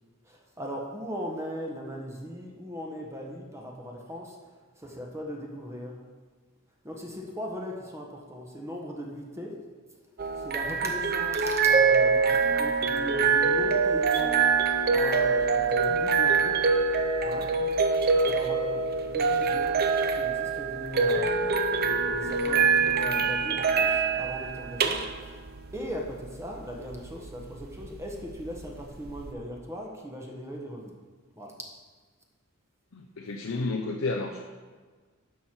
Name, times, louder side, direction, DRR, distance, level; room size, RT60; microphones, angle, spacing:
voice 1, 0.2-6.0 6.8-9.6 10.3-14.5 14.9-16.6 17.2-17.6 18.2-25.4 25.7-31.0 31.4-31.6, equal, 15° right, 0 dB, 1.1 m, -38 dB
sound 1, 10.2-29.3, right 5 dB, 50° right, 0.6 m, -25 dB
voice 2, 32.9-34.4, left 3 dB, 70° left, 2 dB, 0.7 m, -31 dB
11.0 x 6.3 x 4.4 m, 1.4 s
head